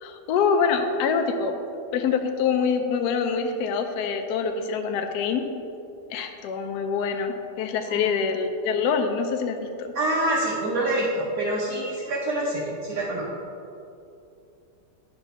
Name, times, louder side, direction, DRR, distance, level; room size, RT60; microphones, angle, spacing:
voice 1, 0.0-1.6 1.9-5.5 6.1-10.0, left 6 dB, 70° left, 5 dB, 1.1 m, -25 dB
voice 2, 9.9-13.2, right 1 dB, 55° right, -7 dB, 1.5 m, -26 dB
10.5 x 4.0 x 4.5 m, 2.7 s
omnidirectional pair, 1.9 m